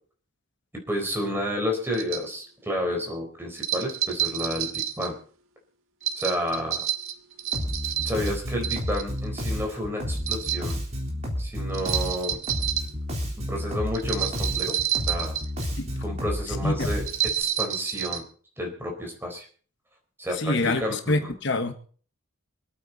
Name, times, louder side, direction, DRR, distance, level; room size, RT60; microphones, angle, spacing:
voice 1, 0.9-5.2 6.1-6.9 8.0-10.8 11.4-12.4 13.3-14.7 15.1-15.4 16.0-17.1 17.4-18.2 18.6-19.5 20.2-21.3, left 1 dB, 10° right, 4.1 m, -30 dB
sound 1, 1.9-2.2 3.6-5.1 6.0-8.3 8.6-9.2 10.2-10.7 11.7-12.9 13.9-15.6 17.1-18.2, right 11 dB, 80° right, 1.6 m, -29 dB
Bass guitar, 7.5-17.4, equal, 30° right, 3.7 m, -31 dB
voice 2, 16.6-16.9 20.3-21.7, left 2 dB, 60° left, 1.2 m, -26 dB
26.5 x 9.1 x 4.1 m
head